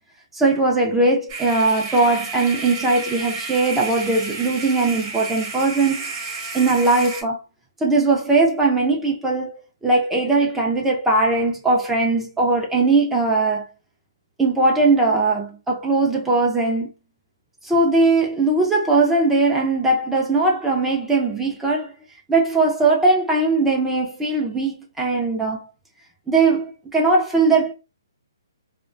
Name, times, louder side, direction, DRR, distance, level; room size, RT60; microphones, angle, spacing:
voice 1, 0.3-6.0 6.5-7.4 7.8-13.7 14.4-16.9 17.6-21.9 22.3-25.6 26.3-27.7, right 3 dB, 5° right, 0.4 m, -19 dB
sound 1, 1.3-7.2, right 3 dB, 25° right, 0.7 m, -31 dB
2.5 x 2.1 x 2.4 m
hypercardioid pair, 155°, 2 cm